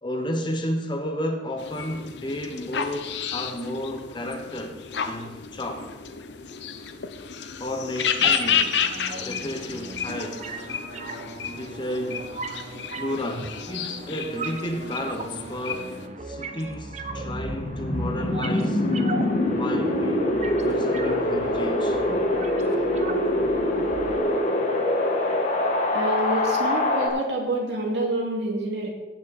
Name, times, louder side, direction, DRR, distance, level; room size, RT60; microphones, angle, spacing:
voice 1, 0.0-5.9 7.6-8.8 9.2-10.6 11.5-12.3 13.0-16.0 16.2-18.8 19.5-20.3 20.6-22.0, left 1 dB, 25° left, 1.1 m, -32 dB
sound 1, 1.6-16.1, left 7 dB, 70° left, 0.8 m, -31 dB
sound 2, 8.2-24.2, right 2 dB, 40° right, 0.9 m, -37 dB
Wind, 16.9-27.1, left 1 dB, 45° left, 1.8 m, -24 dB
voice 2, 25.9-28.9, right 1 dB, 65° right, 2.6 m, -27 dB
17.0 x 6.3 x 4.2 m
head